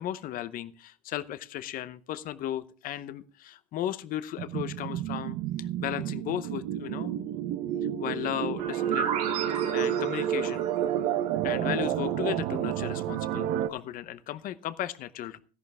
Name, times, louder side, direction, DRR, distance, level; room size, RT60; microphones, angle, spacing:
voice 1, 0.0-7.2 8.0-9.1 9.7-10.6 11.4-15.4, left 12 dB, 45° left, 15 dB, 0.9 m, -35 dB
sound 1, 4.4-13.7, right 11 dB, 55° right, 0.9 m, -30 dB
sound 2, 8.6-12.3, right 8 dB, 80° right, 2.9 m, -35 dB
13.5 x 11.0 x 3.5 m, 0.38 s
supercardioid pair, 115°, 20 cm